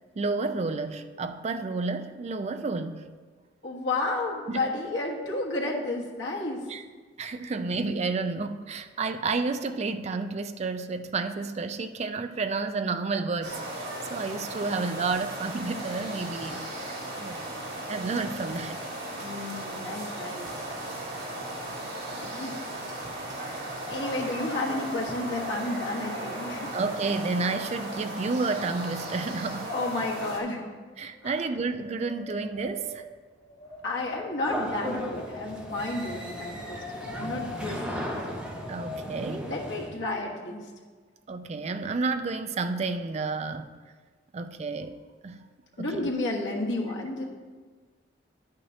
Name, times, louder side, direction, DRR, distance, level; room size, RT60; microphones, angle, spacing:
voice 1, 0.2-3.1 4.5-4.6 6.7-6.8 7.2-17.6 17.9-18.8 26.7-29.7 31.0-33.0 38.7-39.5 41.3-43.7 44.3-44.9 45.2-45.4 45.8-46.1, right 3 dB, 35° right, 0.4 m, -31 dB
voice 2, 3.6-6.6 19.2-20.5 22.2-22.6 23.9-26.7 29.7-30.6 31.2-31.3 33.8-38.1 39.4-40.6 45.8-47.2, left 2 dB, 85° left, 1.5 m, -31 dB
sound 1, 13.4-30.4, right 1 dB, 70° right, 2.2 m, -36 dB
Wind, 30.6-39.7, left 2 dB, 35° left, 2.9 m, -43 dB
sound 2, 34.4-39.9, equal, 5° right, 1.0 m, -36 dB
10.5 x 8.8 x 2.8 m
head